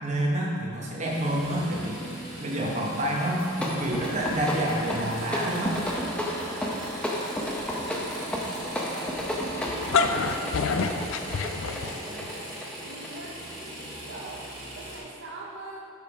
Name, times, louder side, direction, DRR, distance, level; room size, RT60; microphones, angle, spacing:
voice 1, 0.0-2.1 2.4-5.8, right 1 dB, 35° right, -2 dB, 1.0 m, -28 dB
sound 1, 1.1-15.0, right 1 dB, 20° right, 1.7 m, -39 dB
sound 2, 3.3-13.6, equal, 5° left, 0.7 m, -33 dB
voice 2, 7.8-9.1 9.7-11.1 11.4-13.4 13.8-15.9, right 2 dB, 55° right, -2 dB, 0.7 m, -43 dB
sound 3, 9.7-12.3, left 5 dB, 70° left, 0.4 m, -27 dB
6.5 x 5.4 x 4.9 m, 2.7 s
head